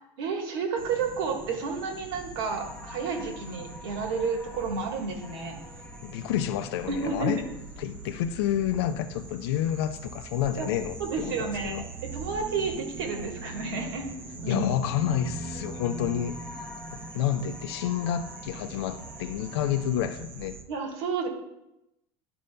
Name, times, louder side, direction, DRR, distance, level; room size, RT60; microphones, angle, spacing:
voice 1, 0.2-5.6 6.9-7.4 10.6-10.7 11.0-14.1 14.4-14.7 20.7-21.3, right 5 dB, 70° right, 3 dB, 1.4 m, -31 dB
sound 1, 0.8-20.6, right 2 dB, 15° right, 0.5 m, -42 dB
sound 2, 2.4-20.0, left 4 dB, 15° left, 0.8 m, -51 dB
voice 2, 6.0-7.4 7.8-11.8 14.5-16.7 17.1-20.6, left 10 dB, 85° left, 9 dB, 0.4 m, -29 dB
11.0 x 5.2 x 2.2 m, 0.88 s
cardioid pair, 170°, 13 cm